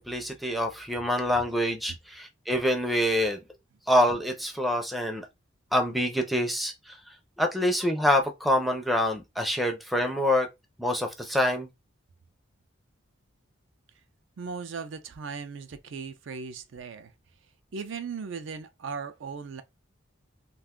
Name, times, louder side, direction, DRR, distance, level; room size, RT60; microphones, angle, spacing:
voice 1, 0.0-3.4 3.9-5.2 5.7-6.9 7.4-10.5 10.8-11.7, left 1 dB, ahead, 0.5 m, -26 dB
voice 2, 14.4-17.1 17.7-19.6, right 5 dB, 65° right, 0.4 m, -37 dB
2.4 x 2.3 x 3.5 m
head